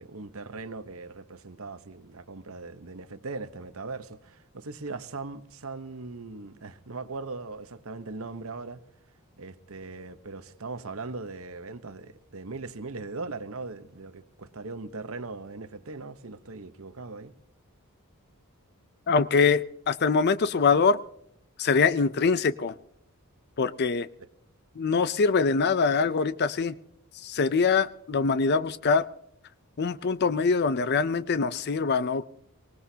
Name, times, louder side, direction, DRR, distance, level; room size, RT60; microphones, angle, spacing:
voice 1, 0.0-8.8 9.4-17.3 24.2-24.3, right 3 dB, 65° right, 1.0 m, -39 dB
voice 2, 19.1-21.0 21.6-22.7 23.6-24.1 24.8-26.7 27.2-29.1 29.8-32.3, left 5 dB, 45° left, 0.5 m, -24 dB
24.0 x 19.0 x 2.8 m
head